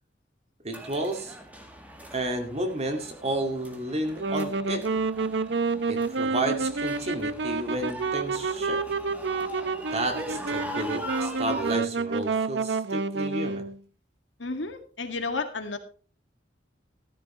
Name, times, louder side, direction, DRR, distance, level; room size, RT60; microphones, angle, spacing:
voice 1, 0.6-1.4 2.1-4.9 5.9-8.8 9.9-13.7, right 1 dB, 35° right, 2.1 m, -31 dB
sound 1, 0.7-11.8, equal, 10° right, 2.0 m, -41 dB
Wind instrument woodwind instrument, 4.1-13.8, right 4 dB, 70° right, 0.7 m, -29 dB
voice 2, 14.4-15.8, left 3 dB, 85° left, 2.1 m, -32 dB
14.0 x 12.0 x 3.1 m
head